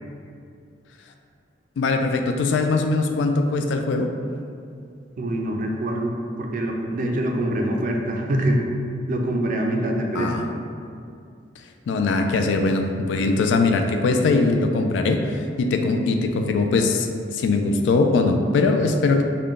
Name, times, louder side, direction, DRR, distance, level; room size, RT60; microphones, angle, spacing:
voice 1, 1.8-4.1 10.2-10.5 11.9-19.2, left 3 dB, 85° left, 5 dB, 0.3 m, -21 dB
voice 2, 5.2-6.1 6.4-8.6 9.1-10.5, right 1 dB, 50° right, 1 dB, 0.4 m, -24 dB
3.6 x 2.2 x 3.7 m, 2.4 s
head